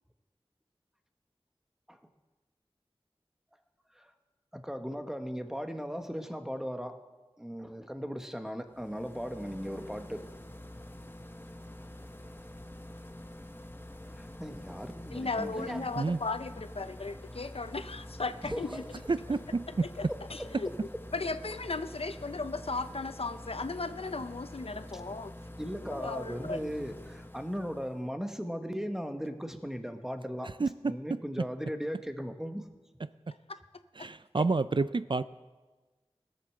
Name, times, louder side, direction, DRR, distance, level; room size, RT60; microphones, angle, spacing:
voice 1, 4.5-7.0 7.4-10.2 14.1-15.9 18.5-18.8 20.1-20.5 25.6-30.5 30.9-32.7 34.4-34.5, equal, 5° right, 7 dB, 1.1 m, -37 dB
sound 1, 8.7-28.1, left 1 dB, 20° left, 0.9 m, -47 dB
voice 2, 15.1-18.8 19.7-20.7 21.1-25.3 25.9-26.6 33.5-33.6 34.0-34.1, left 3 dB, 70° left, 11 dB, 0.5 m, -36 dB
voice 3, 19.1-19.4 30.6-30.7 34.0-35.2, right 3 dB, 50° right, 14 dB, 0.4 m, -28 dB
17.0 x 8.0 x 6.6 m, 1.3 s
wide cardioid pair, 45°, 10 cm